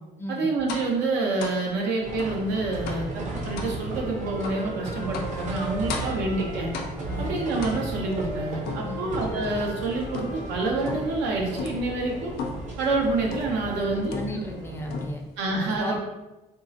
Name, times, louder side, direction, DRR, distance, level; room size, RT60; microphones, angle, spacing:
voice 1, 0.3-6.7 7.2-12.3 12.8-14.4 15.4-16.0, right 3 dB, 90° right, 0 dB, 0.7 m, -27 dB
sound 1, 0.7-1.0 1.4-1.6 2.2-2.4 2.9-3.1 3.6-3.8 4.4-4.7 5.1-5.4 5.9-6.3 6.7-7.1 7.6-8.1 8.6-9.7 10.1-10.5 10.9-11.2 11.6-11.9 12.4-12.7 13.3-13.6 14.1-14.6 14.9-15.4, left 4 dB, 70° left, 0.5 m, -35 dB
sound 2, 2.0-15.1, right 2 dB, 45° right, 0.6 m, -35 dB
Wind instrument woodwind instrument, 3.1-6.8 7.0-11.0, right 2 dB, 60° right, 1.0 m, -40 dB
voice 2, 7.0-7.4 8.8-9.1 13.7-15.2 15.6-16.0, left 1 dB, 15° left, 1 dB, 0.4 m, -35 dB
3.5 x 2.0 x 2.7 m, 1.0 s
cardioid pair, 110°, 17 cm